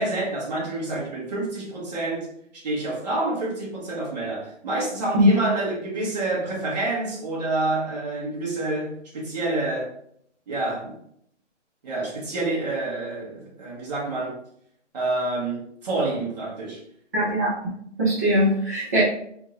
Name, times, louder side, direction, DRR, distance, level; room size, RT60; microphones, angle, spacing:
voice 1, 0.0-2.3 2.5-9.9 10.5-11.0 11.8-14.4 14.9-16.8, right 2 dB, 35° right, 1.2 m, -28 dB
voice 2, 17.1-17.5 18.0-19.0, equal, 15° right, 0.6 m, -20 dB
3.6 x 2.5 x 2.8 m
hypercardioid pair, 165°, 36 cm